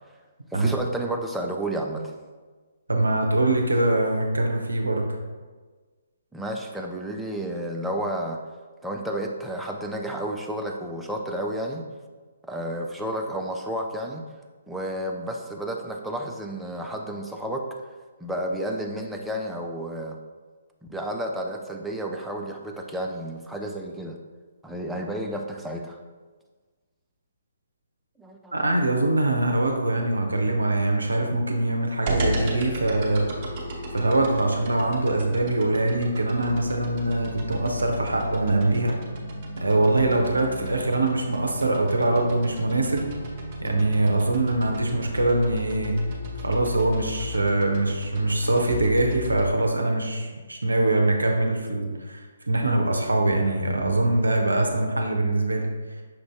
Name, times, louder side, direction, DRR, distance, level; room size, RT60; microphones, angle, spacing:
voice 1, 0.5-2.1 6.3-8.4 8.8-11.9 12.4-14.2 14.7-17.6 18.2-20.2 20.9-24.2 24.6-26.0 28.2-28.5, right 1 dB, 5° right, 0 dB, 0.4 m, -31 dB
voice 2, 2.9-5.1 28.5-33.3 33.9-39.0 39.6-43.1 43.6-46.0 46.4-55.7, right 2 dB, 75° right, 2 dB, 0.6 m, -23 dB
sound 1, 32.1-49.5, equal, 35° right, 0.8 m, -35 dB
5.8 x 2.6 x 3.3 m, 1.4 s
figure-of-eight pair, 135°, 0 cm